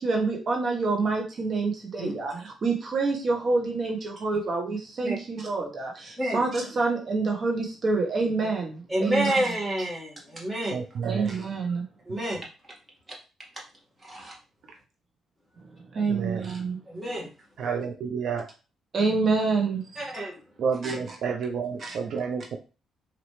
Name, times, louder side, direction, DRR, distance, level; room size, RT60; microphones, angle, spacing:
voice 1, 0.0-9.5 11.0-11.8 15.9-16.8 18.9-19.8 20.8-21.2 21.8-22.0, right 3 dB, 50° right, 1 dB, 1.2 m, -27 dB
voice 2, 8.9-10.8 12.1-12.5 14.0-14.3 16.9-17.3 20.0-20.3, right 1 dB, 15° right, -4 dB, 1.9 m, -29 dB
voice 3, 10.7-11.3 16.1-16.4 17.6-18.4 20.6-22.6, right 6 dB, 70° right, 3 dB, 0.5 m, -30 dB
4.2 x 2.9 x 3.2 m, 0.33 s
cardioid pair, 90°, 0 cm